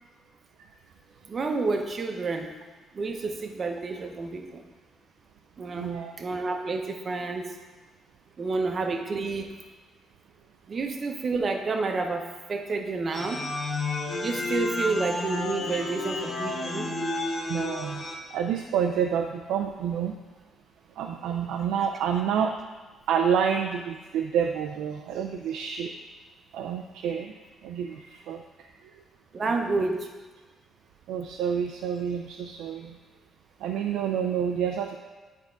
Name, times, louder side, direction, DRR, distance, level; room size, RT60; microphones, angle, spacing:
voice 1, 1.3-2.5 2.9-4.6 5.6-7.6 8.4-9.5 10.7-13.4 14.2-16.9 29.3-30.1, right 3 dB, 45° right, 4 dB, 0.8 m, -29 dB
voice 2, 5.7-6.1 17.5-18.0 18.3-20.2 21.0-22.6 23.1-25.9 26.5-27.4 27.6-28.4 28.8-29.0 31.1-33.0 33.6-35.0, right 8 dB, 90° right, 3 dB, 0.4 m, -28 dB
sound 1, 13.1-18.1, left 2 dB, 50° left, 1.3 m, -31 dB
9.1 x 3.6 x 3.9 m, 1.3 s
cardioid pair, 90°, 0 cm